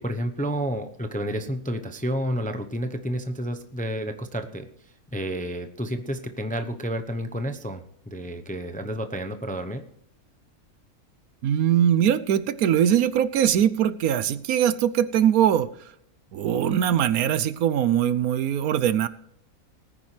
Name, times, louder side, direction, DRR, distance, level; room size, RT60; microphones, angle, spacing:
voice 1, 0.0-9.8, equal, 10° left, 7 dB, 0.6 m, -30 dB
voice 2, 11.4-15.7 16.3-19.1, right 10 dB, 75° right, 15 dB, 1.1 m, -21 dB
19.0 x 10.0 x 3.3 m, 0.69 s
omnidirectional pair, 1.6 m